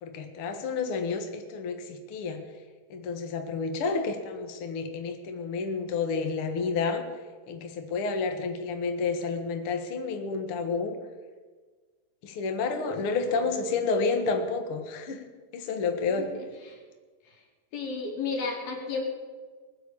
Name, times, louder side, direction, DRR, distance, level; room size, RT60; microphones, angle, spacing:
voice 1, 0.0-2.4 2.9-7.0 7.5-11.0 12.2-15.2 15.5-16.3, left 4 dB, 90° left, 6 dB, 1.2 m, -30 dB
voice 2, 12.8-13.4 16.2-16.3 16.6-16.8 17.7-19.0, left 4 dB, 60° left, 0 dB, 4.3 m, -33 dB
20.5 x 7.4 x 8.5 m, 1.4 s
omnidirectional pair, 4.9 m